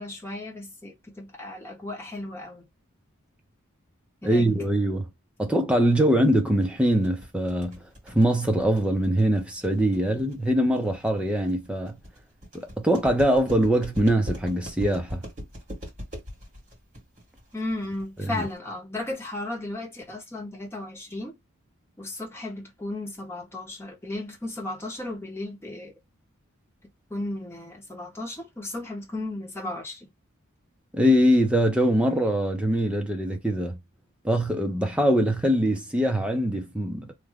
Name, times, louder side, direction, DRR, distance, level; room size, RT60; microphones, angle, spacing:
voice 1, 0.0-2.7 4.2-4.5 17.5-21.4 22.0-25.9 27.1-30.1, left 2 dB, 10° left, 1.0 m, -35 dB
voice 2, 4.2-5.1 5.4-7.8 8.1-12.0 12.5-15.2 18.3-18.4 30.9-33.8 34.2-37.1, equal, 5° right, 0.6 m, -23 dB
sound 1, 6.6-18.6, equal, 35° right, 2.0 m, -40 dB
3.2 x 2.2 x 3.5 m
head